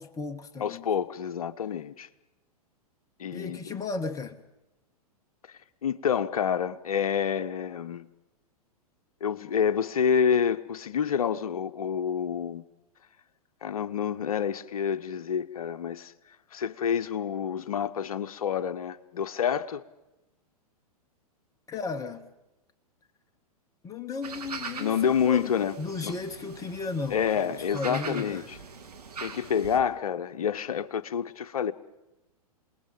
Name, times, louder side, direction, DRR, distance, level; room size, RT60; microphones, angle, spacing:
voice 1, 0.0-0.9 3.3-4.4 21.7-22.3 23.8-25.5 25.8-28.5, left 4 dB, 15° left, 1.3 m, -35 dB
voice 2, 0.6-2.1 3.2-3.6 5.8-8.1 9.2-12.6 13.6-16.1 16.5-19.8 24.8-25.8 26.0-26.1 27.1-28.6 29.2-31.7, left 7 dB, 65° left, 0.9 m, -28 dB
sound 1, 24.2-29.8, right 5 dB, 75° right, 2.3 m, -42 dB
27.5 x 20.0 x 5.2 m
figure-of-eight pair, 105°, 20 cm